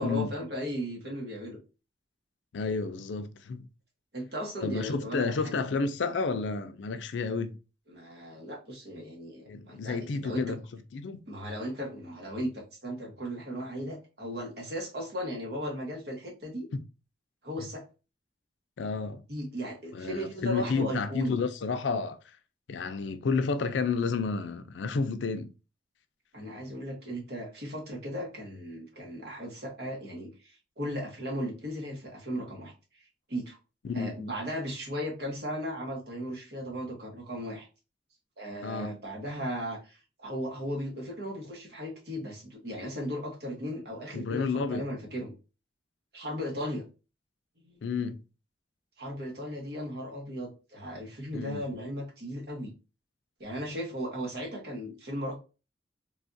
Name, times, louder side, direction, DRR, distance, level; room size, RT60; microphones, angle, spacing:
voice 1, 0.0-1.6 4.1-5.5 7.9-10.6 11.3-16.7 17.4-17.8 19.3-21.4 26.3-32.7 33.3-33.6 33.9-37.7 38.4-45.3 46.1-46.8 47.6-47.8 49.0-52.7 53.4-55.4, equal, 60° right, 1.1 m, -36 dB
voice 2, 2.5-3.7 4.6-7.6 9.5-10.6 10.9-11.2 16.7-16.8 18.8-19.2 19.9-22.2 22.7-25.5 33.8-34.1 38.6-38.9 44.1-44.8 47.8-48.2 51.3-51.8, left 4 dB, 85° left, 0.4 m, -31 dB
3.3 x 2.3 x 2.6 m
head